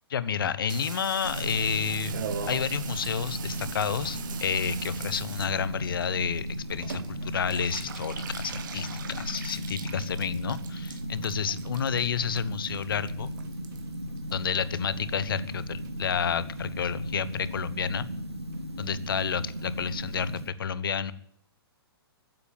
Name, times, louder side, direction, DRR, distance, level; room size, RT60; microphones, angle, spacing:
voice 1, 0.1-2.2 2.5-13.3 14.3-18.0 18.8-21.1, left 7 dB, 60° left, 16 dB, 1.1 m, -30 dB
Water tap faucet / Bathtub (filling or washing), 0.7-15.2 15.5-16.2 16.6-16.7 16.9-17.0 17.2-17.6 17.8-17.9 18.2-18.3 18.5-18.6 18.9-19.0 19.2-19.3 19.6-19.7 20.0-20.1 20.4-20.5, right 8 dB, 50° right, 1.6 m, -42 dB
sound 1, 1.2-20.5, equal, 85° right, 2.8 m, -36 dB
15.5 x 9.6 x 9.3 m, 0.71 s
figure-of-eight pair, 120°, 13 cm